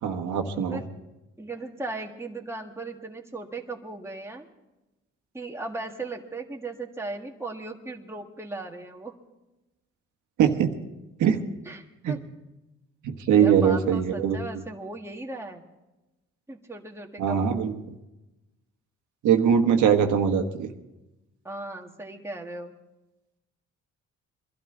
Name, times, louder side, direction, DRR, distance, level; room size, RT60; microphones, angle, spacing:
voice 1, 0.0-0.8 10.4-10.7 11.2-11.4 12.0-12.2 13.0-14.4 17.2-17.8 19.2-20.7, right 8 dB, 80° right, 4 dB, 1.5 m, -22 dB
voice 2, 1.4-4.5 5.3-9.2 11.6-12.2 13.3-15.6 16.5-17.4 21.4-22.7, right 2 dB, 10° right, 1 dB, 1.7 m, -37 dB
22.5 x 12.5 x 3.8 m, 0.99 s
cardioid pair, 90°, 30 cm